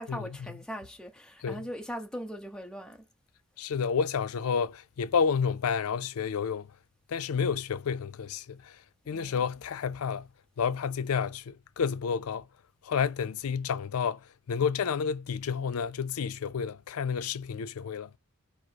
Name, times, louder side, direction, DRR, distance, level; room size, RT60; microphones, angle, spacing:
voice 1, 0.0-3.0 9.1-9.4, equal, 5° left, 0.9 m, -40 dB
voice 2, 3.6-6.7 7.1-8.8 9.1-10.3 10.6-12.4 12.8-18.1, left 6 dB, 85° left, 0.4 m, -30 dB
4.5 x 2.0 x 4.5 m
head